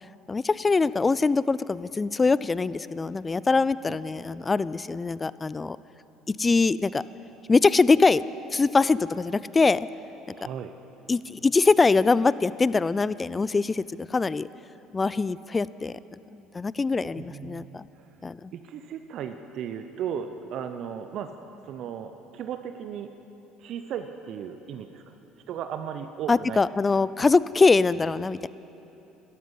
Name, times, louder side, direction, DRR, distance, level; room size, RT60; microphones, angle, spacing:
voice 1, 0.3-5.8 6.3-7.0 7.5-8.2 8.5-9.9 10.3-10.4 11.1-14.5 14.9-15.9 16.3-17.8 18.2-18.5 26.3-28.5, left 4 dB, 25° left, 18 dB, 0.3 m, -23 dB
voice 2, 10.3-10.7 17.0-17.8 18.5-21.3 21.7-23.1 23.6-25.1 25.5-26.6, right 8 dB, 60° right, 8 dB, 0.6 m, -36 dB
13.0 x 12.5 x 5.7 m, 3.0 s
hypercardioid pair, 70°, 0 cm